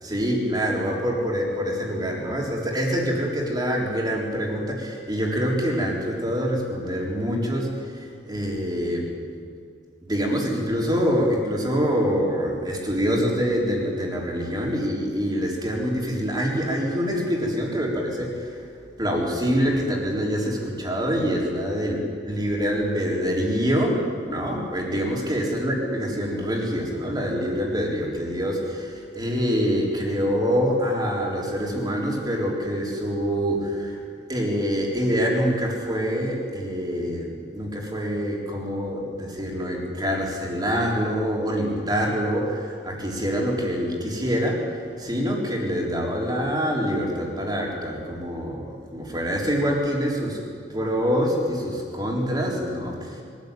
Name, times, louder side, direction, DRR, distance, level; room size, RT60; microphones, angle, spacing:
voice 1, 0.0-9.1 10.1-18.6 19.0-24.0 24.3-34.0 34.3-50.4 50.7-53.2, equal, 20° right, -2 dB, 4.0 m, -25 dB
23.5 x 13.5 x 9.2 m, 2.1 s
head